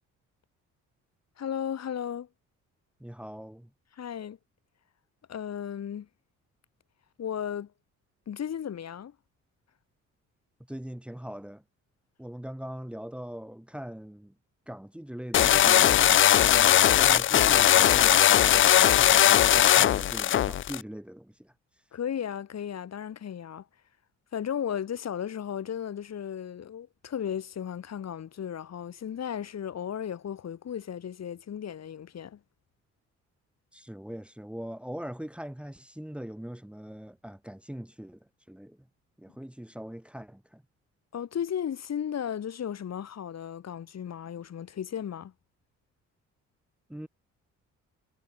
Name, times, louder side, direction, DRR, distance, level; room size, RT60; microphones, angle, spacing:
voice 1, 1.4-2.3 4.0-4.4 5.3-6.1 7.2-7.7 8.3-9.1 21.9-23.7 24.3-32.4 41.1-45.3, left 9 dB, 60° left, 7.3 m, -35 dB
voice 2, 3.0-3.7 10.7-11.6 12.2-14.3 14.7-21.5 33.7-38.9 39.2-40.6 46.9-47.1, equal, 5° right, 2.8 m, -41 dB
sound 1, 15.3-20.8, left 11 dB, 45° left, 0.4 m, -19 dB
cardioid pair, 90°, 30 cm